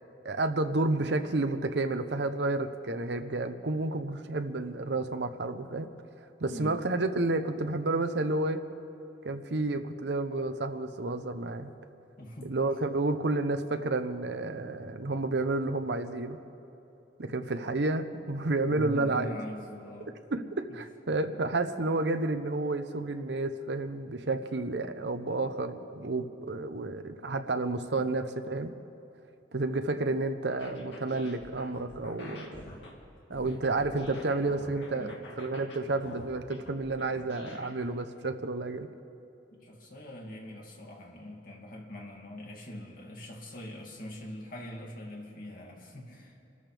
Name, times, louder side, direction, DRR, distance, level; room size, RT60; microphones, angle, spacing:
voice 1, 0.2-5.9 6.4-8.6 9.2-11.7 12.4-16.4 17.2-19.3 20.3-28.7 29.5-32.6 33.3-38.9, right 2 dB, 70° right, 8 dB, 0.8 m, -30 dB
voice 2, 6.4-6.7 12.2-12.5 18.7-20.1 27.9-28.0 34.9-35.2 39.5-46.4, equal, 50° left, -1 dB, 2.5 m, -42 dB
sound 1, 30.5-37.9, left 1 dB, 85° left, 2.2 m, -47 dB
27.5 x 13.5 x 3.5 m, 2.9 s
head